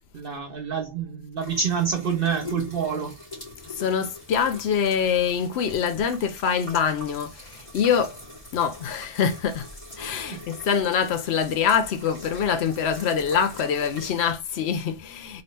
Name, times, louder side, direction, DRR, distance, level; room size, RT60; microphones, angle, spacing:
voice 1, 0.1-3.2 10.3-10.5, right 6 dB, 65° right, 1.0 m, -27 dB
sound 1, 1.4-14.3, left 1 dB, 35° left, 2.6 m, -43 dB
voice 2, 3.7-8.2 8.5-9.7 9.9-15.4, left 7 dB, 90° left, 0.9 m, -25 dB
3.9 x 3.0 x 3.2 m
omnidirectional pair, 1.0 m